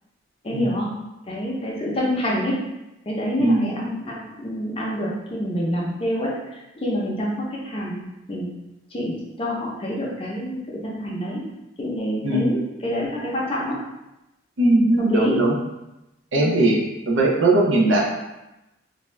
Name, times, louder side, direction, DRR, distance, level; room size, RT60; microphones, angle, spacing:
voice 1, 0.4-0.9 1.3-2.6 3.1-8.5 8.9-11.4 11.8-13.8 15.0-15.4 16.4-16.6, equal, 30° left, -4 dB, 0.5 m, -27 dB
voice 2, 3.4-3.7 12.2-12.6 14.6-15.6 16.3-16.8 17.1-18.0, right 2 dB, 75° right, -2 dB, 0.6 m, -19 dB
2.6 x 2.2 x 3.1 m, 0.94 s
head